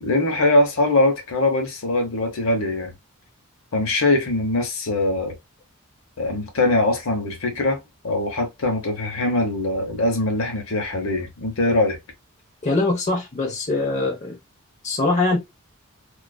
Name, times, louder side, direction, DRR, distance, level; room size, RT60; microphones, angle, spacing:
voice 1, 0.0-2.9 3.7-5.3 6.2-7.8 8.0-12.0, left 2 dB, 65° left, 0.8 m, -22 dB
voice 2, 12.6-14.4 14.8-15.4, left 2 dB, 30° left, 0.6 m, -22 dB
2.4 x 2.4 x 2.2 m
head